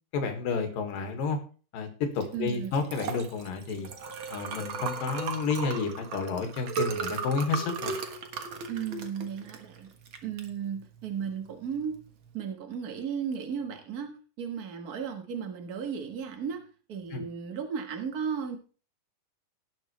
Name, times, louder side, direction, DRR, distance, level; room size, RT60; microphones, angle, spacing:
voice 1, 0.1-1.4 1.7-3.9 4.3-8.0 17.1-17.2, left 4 dB, 80° left, 5 dB, 3.4 m, -31 dB
Liquid, 2.1-12.3, right 5 dB, 55° right, 1.4 m, -37 dB
voice 2, 2.3-2.7 8.7-9.9 10.2-12.0 12.3-16.6 16.9-18.6, right 7 dB, 85° right, 4 dB, 0.8 m, -35 dB
18.0 x 7.2 x 3.2 m, 0.37 s
omnidirectional pair, 4.0 m